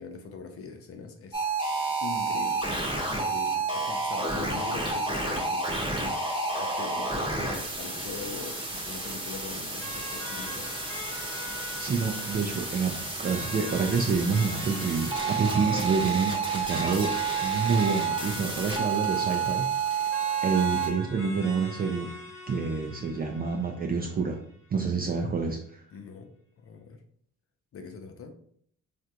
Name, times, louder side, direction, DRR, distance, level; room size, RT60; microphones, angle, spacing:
voice 1, 0.0-1.4 2.0-10.8 25.9-27.0 27.7-28.3, left 4 dB, 50° left, 5 dB, 0.5 m, -42 dB
sound 1, 1.3-20.9, right 4 dB, 15° right, 0.9 m, -30 dB
sound 2, 9.8-24.8, left 1 dB, 10° left, 1.1 m, -42 dB
voice 2, 11.8-12.9 13.2-17.1 17.4-19.7 20.0-20.1 20.4-22.1 22.5-24.4 24.7-25.8, right 5 dB, 30° right, 2 dB, 0.4 m, -28 dB
3.3 x 2.5 x 2.8 m, 0.64 s
cardioid pair, 90°, 30 cm